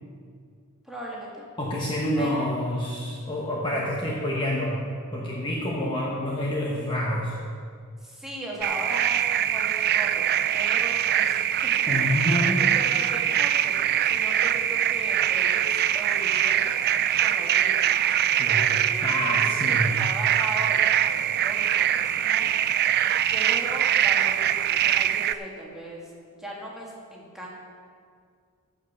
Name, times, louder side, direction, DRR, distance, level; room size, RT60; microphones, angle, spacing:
voice 1, 0.8-1.4 2.2-2.6 8.0-10.3 10.5-11.9 12.2-16.9 17.2-18.0 18.5-22.5 22.8-22.9 23.3-26.0 26.4-27.5, equal, ahead, -4 dB, 2.0 m, -38 dB
voice 2, 1.6-4.8 5.1-7.4 11.9-12.7 18.4-18.7 19.0-20.0, left 1 dB, 20° left, -4 dB, 1.1 m, -27 dB
sound 1, 8.6-25.3, right 10 dB, 45° right, 0.3 m, -23 dB
14.5 x 5.5 x 6.6 m, 2.1 s
head